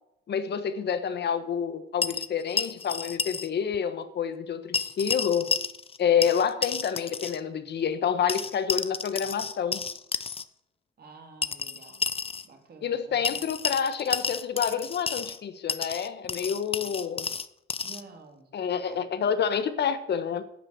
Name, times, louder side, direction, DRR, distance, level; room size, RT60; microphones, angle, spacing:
voice 1, 0.3-5.5 6.0-9.8 12.8-17.3 18.5-20.4, left 7 dB, 60° left, 1.3 m, -28 dB
sound 1, 2.0-3.5 3.7-3.8 4.7-6.0 6.2-7.4 8.3-10.4 11.4-12.5 13.2-15.4 15.7-18.0, left 5 dB, 30° left, 0.7 m, -31 dB
voice 2, 11.0-12.1 12.4-13.2 17.8-18.5 18.9-19.4, right 4 dB, 50° right, 3.0 m, -50 dB
11.0 x 7.6 x 8.2 m
cardioid pair, 90°, 20 cm